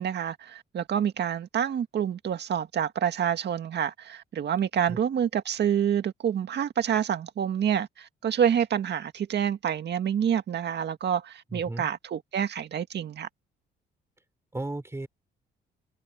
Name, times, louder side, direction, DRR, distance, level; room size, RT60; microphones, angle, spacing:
voice 1, 0.0-13.3, right 9 dB, 60° right, 2.0 m, -27 dB
voice 2, 11.5-11.9 14.5-15.1, right 2 dB, 15° right, 3.3 m, -34 dB
cardioid pair, 90°, 20 cm